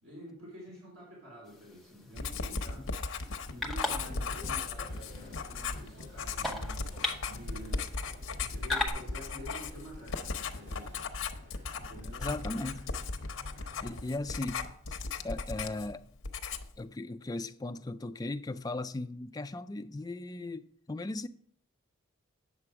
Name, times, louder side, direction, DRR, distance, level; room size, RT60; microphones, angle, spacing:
voice 1, 0.0-2.9 3.5-7.8 8.4-11.1 11.7-12.3 13.7-14.1, equal, 75° right, 3.7 m, -48 dB
sound 1, 1.5-8.9, left 2 dB, ahead, 0.9 m, -40 dB
Writing, 2.2-16.0 16.2-16.8, left 4 dB, 75° left, 0.8 m, -37 dB
sound 2, 3.8-14.0, left 1 dB, 55° right, 2.8 m, -55 dB
voice 2, 12.2-12.9 13.8-16.1 16.8-21.3, left 2 dB, 20° left, 0.3 m, -38 dB
9.1 x 6.8 x 4.7 m
head